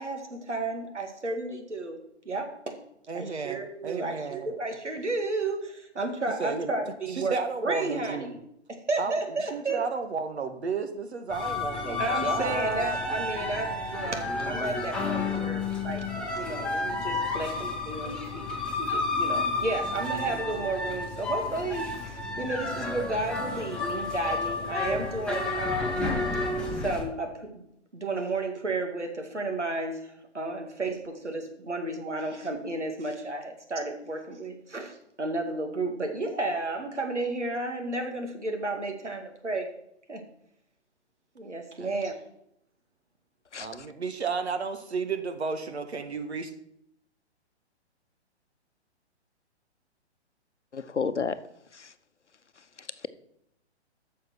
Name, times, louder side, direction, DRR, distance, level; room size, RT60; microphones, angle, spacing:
voice 1, 0.0-2.0 2.3-2.8 3.1-8.3 8.7-9.8 12.0-16.0 16.4-18.5 18.8-26.0 26.7-27.6 27.9-39.7 40.1-40.2 41.4-42.1, right 2 dB, 85° right, 2.3 m, -32 dB
voice 2, 3.1-4.6 6.4-6.7 7.1-8.4 9.0-9.1 9.5-13.0 41.8-41.9 43.6-46.5, right 4 dB, 70° right, 1.6 m, -32 dB
sound 1, 11.3-27.0, left 3 dB, 5° left, 1.4 m, -31 dB
voice 3, 43.5-43.9 50.7-51.4 51.7-51.9 52.8-53.1, left 5 dB, 85° left, 0.8 m, -32 dB
9.5 x 6.5 x 6.3 m
figure-of-eight pair, 130°, 34 cm